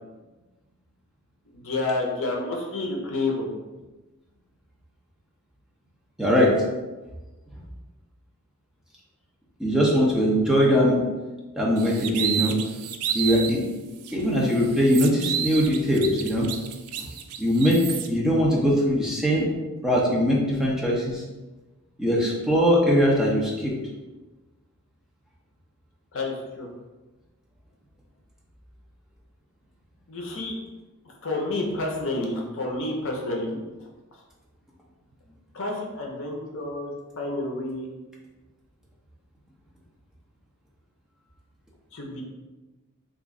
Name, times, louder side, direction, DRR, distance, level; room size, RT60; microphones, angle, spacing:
voice 1, 1.5-3.5 26.1-26.7 30.1-30.6 31.2-33.6 35.5-37.9 41.9-42.2, left 2 dB, 60° left, 0 dB, 0.6 m, -29 dB
voice 2, 6.2-6.5 9.6-11.0 11.6-12.6 13.1-13.6 14.1-16.5 17.4-17.8 18.1-19.5 19.8-21.2 22.0-23.7, equal, 5° right, -5 dB, 0.6 m, -21 dB
sound 1, 11.8-13.6 14.0-14.1 14.5-18.1, right 9 dB, 85° right, 0.3 m, -31 dB
3.0 x 2.4 x 3.6 m, 1.2 s
head